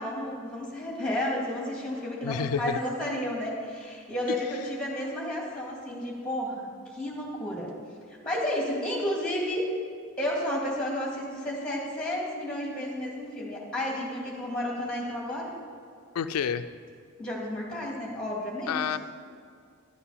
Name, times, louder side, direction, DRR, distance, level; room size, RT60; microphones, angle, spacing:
voice 1, 0.0-7.7 8.2-9.7 10.2-15.5 17.2-18.8, left 1 dB, 5° left, -2 dB, 2.3 m, -32 dB
voice 2, 2.2-2.8 4.3-4.7 16.1-16.7 18.7-19.0, left 7 dB, 90° left, 10 dB, 0.4 m, -29 dB
12.0 x 8.0 x 5.7 m, 2.3 s
head